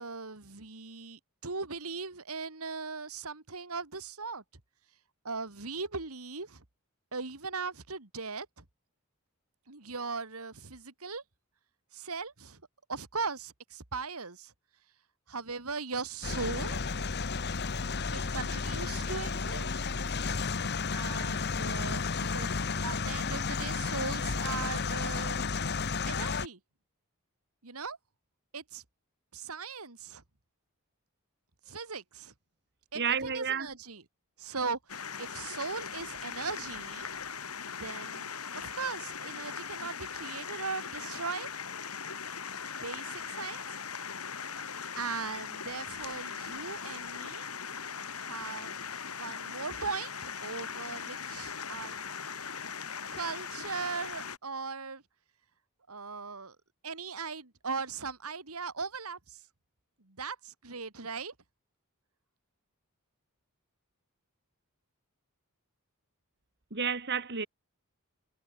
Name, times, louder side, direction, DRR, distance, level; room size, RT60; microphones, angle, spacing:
voice 1, 0.0-4.4 5.2-6.6 7.1-8.6 9.7-11.2 11.9-12.6 12.9-14.5 15.3-16.8 18.1-19.9 20.9-25.4 26.1-26.6 27.6-28.0 28.5-28.8 29.3-30.2 31.7-32.3 32.9-34.0 34.4-34.8 35.2-37.1 37.6-41.5 42.5-43.6 45.0-47.5 48.1-48.9 49.1-50.1 50.4-52.0 53.1-55.0 55.9-56.6 56.8-59.4 60.0-61.3, right 4 dB, 80° right, 2.6 m, -39 dB
sound 1, 16.2-26.5, left 4 dB, 50° left, 1.1 m, -32 dB
voice 2, 33.0-33.7 66.7-67.5, right 6 dB, 50° right, 2.7 m, -31 dB
sound 2, 34.9-54.4, left 6 dB, 80° left, 6.4 m, -40 dB
head